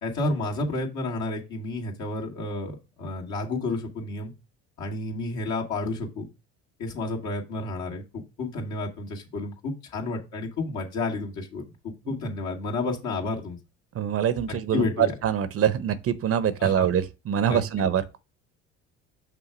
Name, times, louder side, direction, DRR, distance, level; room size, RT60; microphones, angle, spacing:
voice 1, 0.0-4.3 4.8-6.3 6.8-13.6 14.5-15.1 16.6-16.9 17.5-17.7, left 2 dB, 60° left, 2.3 m, -31 dB
voice 2, 14.0-18.2, right 9 dB, 45° right, 0.8 m, -24 dB
6.0 x 3.6 x 6.0 m
hypercardioid pair, 70°, 32 cm